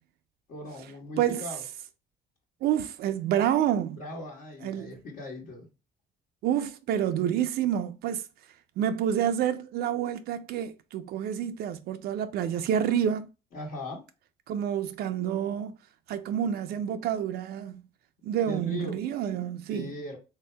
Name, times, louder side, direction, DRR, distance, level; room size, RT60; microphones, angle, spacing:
voice 1, 0.5-1.6 4.0-5.7 13.5-14.0 18.4-19.0 19.7-20.2, left 1 dB, 60° left, 1.4 m, -39 dB
voice 2, 2.6-4.0 4.6-5.0 6.4-8.3 8.8-13.3 14.5-15.8 16.1-17.8 18.2-19.9, right 9 dB, 70° right, 0.4 m, -28 dB
3.4 x 2.7 x 3.2 m
cardioid pair, 110°, 17 cm